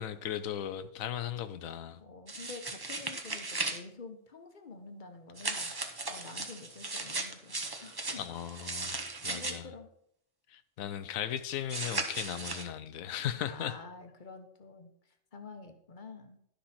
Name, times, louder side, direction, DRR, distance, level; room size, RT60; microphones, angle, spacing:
voice 1, 0.0-2.0 8.2-9.7 10.5-13.7, left 10 dB, 90° left, 1.1 m, -37 dB
voice 2, 2.0-8.2 9.3-9.9 13.3-16.4, left 4 dB, 40° left, 1.1 m, -48 dB
sound 1, 2.3-3.8 5.4-9.5 11.7-12.6, right 3 dB, 25° right, 0.6 m, -37 dB
11.5 x 5.8 x 4.2 m
omnidirectional pair, 1.4 m